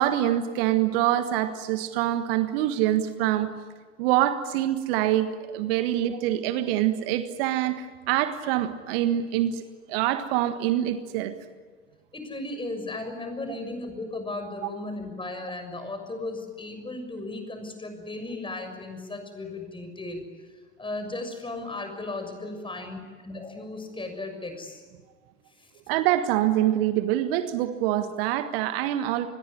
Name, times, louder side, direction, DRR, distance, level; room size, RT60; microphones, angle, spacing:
voice 1, 0.0-3.5 4.0-5.3 5.5-9.6 9.9-11.3 25.9-29.3, right 12 dB, 55° right, 10 dB, 1.6 m, -25 dB
voice 2, 12.1-20.2 20.8-24.8 25.6-25.7, left 2 dB, 15° left, 6 dB, 6.8 m, -36 dB
28.0 x 21.5 x 9.9 m, 1.4 s
figure-of-eight pair, 70°, 34 cm